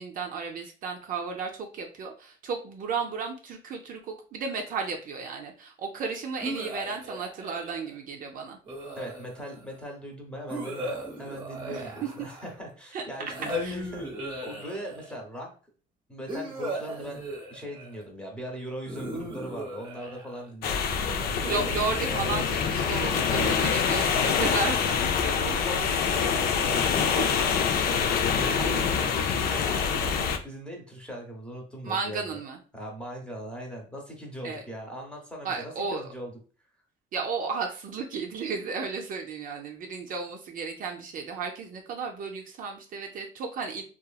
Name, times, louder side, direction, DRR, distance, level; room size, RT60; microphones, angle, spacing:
voice 1, 0.0-8.6 11.7-12.3 12.9-13.0 13.6-13.8 21.4-25.6 27.2-27.5 28.4-29.0 31.8-32.6 34.4-34.6 35.4-36.0 37.1-43.8, right 5 dB, 55° right, 2 dB, 0.5 m, -34 dB
sound 1, 6.4-7.9 8.6-9.6 10.5-12.7 13.3-15.1 16.3-18.0 18.8-20.5 21.4-23.4, right 1 dB, 30° right, 0.8 m, -37 dB
voice 2, 9.0-15.5 16.1-17.2 17.5-21.3 22.8-23.8 25.2-28.6 29.0-32.4 32.7-36.3, equal, 5° left, 0 dB, 0.8 m, -39 dB
sound 2, 20.6-30.4, left 6 dB, 65° left, 0.4 m, -25 dB
2.8 x 2.4 x 2.3 m, 0.38 s
cardioid pair, 110°, 17 cm